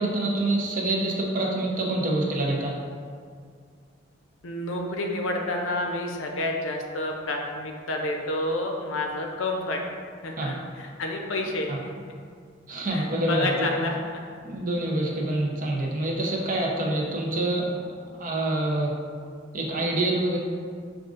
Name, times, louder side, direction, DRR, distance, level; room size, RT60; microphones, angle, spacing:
voice 1, 0.0-2.7 10.4-10.5 11.7-11.8 12.7-13.8 14.4-17.8 18.2-18.9 19.5-20.4, right 1 dB, 45° right, -2 dB, 0.6 m, -26 dB
voice 2, 4.4-9.8 10.2-11.9 12.9-14.0, left 1 dB, 85° left, 2 dB, 0.5 m, -29 dB
6.0 x 2.4 x 2.4 m, 2.1 s
head